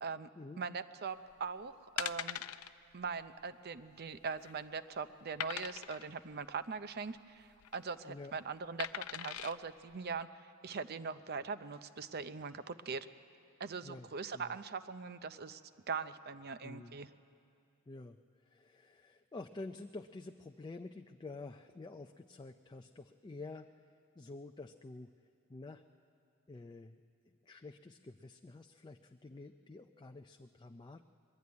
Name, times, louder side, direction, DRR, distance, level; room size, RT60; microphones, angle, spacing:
voice 1, 0.6-2.4 2.9-13.1 13.6-15.6 15.9-17.1, right 5 dB, 45° right, 12 dB, 0.6 m, -41 dB
sound 1, 1.3-1.5 2.0-2.7 3.0-3.2 3.5-3.6 4.1-4.6 5.4-6.1 7.4-7.8 8.8-9.5 10.1-10.2, left 11 dB, 90° left, 0.5 m, -41 dB
voice 2, 8.0-8.3 13.8-14.6 16.6-17.0 17.9-23.7 24.2-25.1 25.5-25.8 26.5-27.0 27.4-31.0, left 3 dB, 20° left, 5 dB, 0.4 m, -49 dB
21.5 x 13.0 x 9.5 m, 2.5 s
head